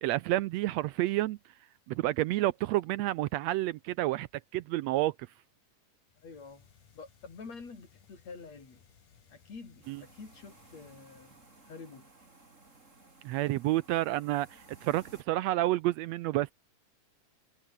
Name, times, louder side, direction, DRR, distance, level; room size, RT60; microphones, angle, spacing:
voice 1, 0.0-1.4 1.9-4.3 4.5-5.1 9.9-10.0 13.2-16.5, right 16 dB, 80° right, 1.5 m, -29 dB
sound 1, 6.1-12.0, left 7 dB, 85° left, 4.7 m, -63 dB
voice 2, 6.2-6.7 6.9-8.8 9.3-11.4 11.7-12.1, left 4 dB, 55° left, 6.2 m, -48 dB
sound 2, 9.8-15.2, right 3 dB, 25° right, 3.8 m, -58 dB
omnidirectional pair, 3.5 m